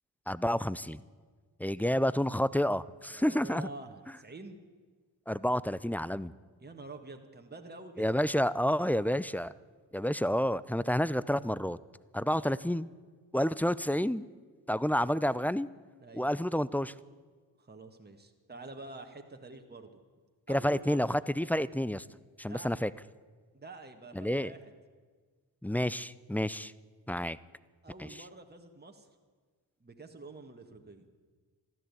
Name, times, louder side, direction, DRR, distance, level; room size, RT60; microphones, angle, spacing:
voice 1, 0.3-1.0 1.6-3.7 5.3-6.3 8.0-9.5 9.9-11.8 12.1-12.9 13.3-14.2 14.7-15.7 16.1-16.9 20.5-22.0 22.4-22.9 24.1-24.5 25.6-26.7 27.1-27.4 28.0-28.1, equal, 5° left, 19 dB, 0.4 m, -29 dB
voice 2, 3.1-4.6 6.6-8.2 12.3-12.6 16.0-16.3 17.6-19.9 20.5-21.2 22.4-22.7 23.5-24.7 27.8-29.1 29.8-31.1, right 2 dB, 20° right, 4 dB, 1.7 m, -47 dB
14.5 x 11.0 x 8.5 m, 1.5 s
supercardioid pair, 45°, 46 cm